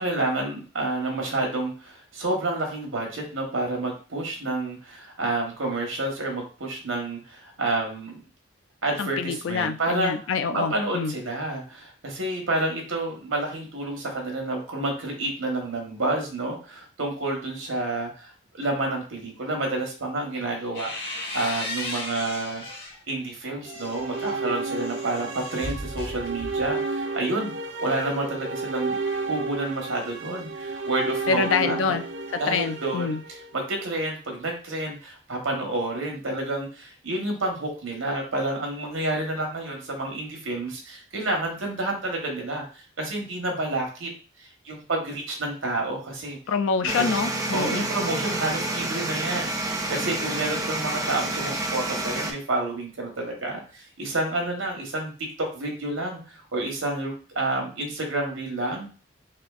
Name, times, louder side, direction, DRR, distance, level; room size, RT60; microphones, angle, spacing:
voice 1, 0.0-8.2 8.8-10.2 10.5-22.6 23.1-29.0 29.3-32.0 32.4-44.1 44.4-46.4 46.8-47.1 47.5-55.1 55.4-58.9, right 2 dB, 90° right, 1 dB, 1.2 m, -29 dB
voice 2, 9.0-11.1 31.3-32.0 32.3-33.2 46.5-47.9, left 5 dB, 80° left, 9 dB, 0.4 m, -26 dB
sound 1, 20.3-23.0 23.5-26.8, left 1 dB, 50° left, 1.3 m, -36 dB
sound 2, 23.6-33.9, right 3 dB, 70° right, 0.5 m, -32 dB
sound 3, 46.9-52.3, right 2 dB, 20° right, 0.4 m, -29 dB
4.2 x 2.6 x 2.4 m, 0.37 s
head